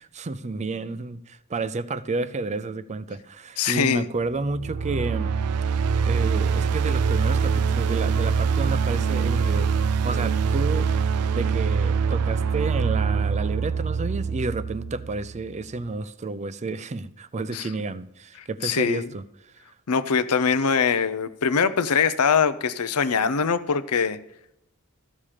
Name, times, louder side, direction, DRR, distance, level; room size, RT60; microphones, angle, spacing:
voice 1, 0.0-5.3 6.0-9.7 10.0-10.9 11.3-19.6, right 3 dB, 30° right, 0.5 m, -31 dB
voice 2, 3.6-4.1 17.5-17.7 18.6-19.1 19.9-24.2, left 6 dB, 90° left, 0.7 m, -22 dB
sound 1, 4.5-15.5, right 5 dB, 85° right, 0.4 m, -24 dB
14.0 x 7.2 x 5.0 m
head